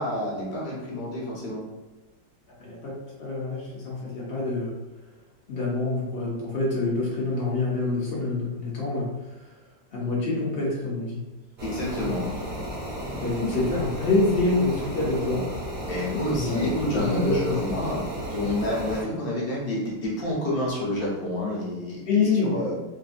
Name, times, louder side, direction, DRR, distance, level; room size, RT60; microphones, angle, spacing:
voice 1, 0.0-1.6 11.6-12.3 15.9-22.7, left 1 dB, 45° left, -5 dB, 0.8 m, -29 dB
voice 2, 2.6-2.9 3.2-4.7 5.5-9.1 9.9-11.2 13.2-15.4 16.3-17.6 22.0-22.6, left 3 dB, 75° left, -5 dB, 0.5 m, -26 dB
sound 1, 11.6-19.0, equal, 50° right, 1.3 m, -34 dB
3.6 x 2.5 x 2.4 m, 1.1 s
omnidirectional pair, 2.0 m